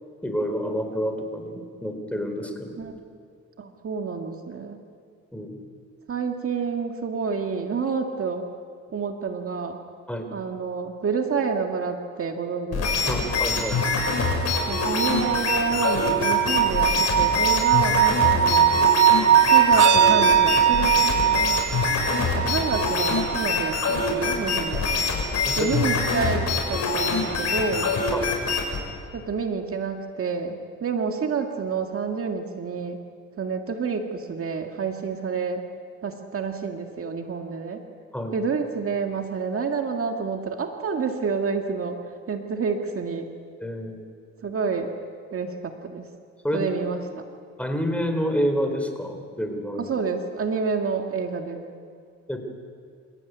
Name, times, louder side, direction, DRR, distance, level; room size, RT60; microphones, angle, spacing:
voice 1, 0.2-2.8 5.3-5.5 10.1-10.3 13.1-13.8 25.5-25.7 28.1-28.3 38.1-38.4 43.6-44.0 46.4-46.7 47.6-49.9 52.3-52.4, equal, 5° left, 5 dB, 4.1 m, -28 dB
voice 2, 3.6-4.8 6.1-8.5 8.9-9.8 10.3-13.3 14.7-18.8 19.4-21.6 22.3-24.8 25.6-27.9 29.1-33.0 33.4-35.7 36.0-37.8 38.3-42.0 42.3-43.3 44.4-44.9 45.3-46.1 46.5-47.0 49.7-51.6, right 5 dB, 45° right, 4 dB, 2.0 m, -29 dB
sound 1, 12.7-28.8, left 4 dB, 60° left, 7.2 m, -24 dB
sound 2, 13.3-25.3 26.7-26.8, right 9 dB, 80° right, 1.5 m, -22 dB
28.0 x 16.0 x 9.6 m, 2.2 s
cardioid pair, 90°, 30 cm